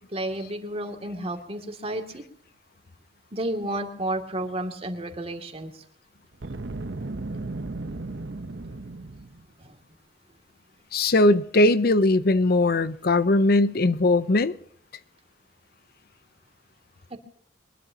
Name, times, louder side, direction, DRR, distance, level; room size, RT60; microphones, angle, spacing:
voice 1, 0.1-2.2 3.3-5.7 9.6-9.8 17.1-17.2, right 1 dB, 35° right, 2.5 m, -31 dB
Boom, 6.3-9.5, right 2 dB, 85° right, 1.0 m, -35 dB
voice 2, 10.9-14.5, left 2 dB, 60° left, 0.7 m, -20 dB
23.5 x 21.0 x 2.9 m
head